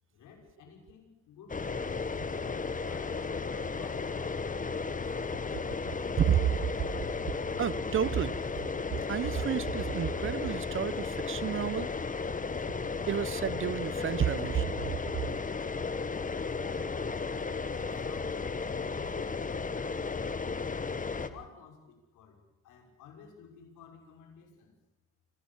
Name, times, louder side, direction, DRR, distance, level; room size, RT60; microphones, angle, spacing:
voice 1, 0.1-2.1 2.8-5.4 16.6-17.1 17.7-19.2 21.2-22.4 22.6-24.7, left 7 dB, 85° left, 6.1 m, -52 dB
sound 1, 1.5-21.3, left 4 dB, 25° left, 1.4 m, -34 dB
voice 2, 6.2-6.5 7.6-8.4 9.1-11.9 13.1-14.9, right 9 dB, 45° right, 0.7 m, -30 dB
26.0 x 17.0 x 7.2 m
cardioid pair, 90°, 30 cm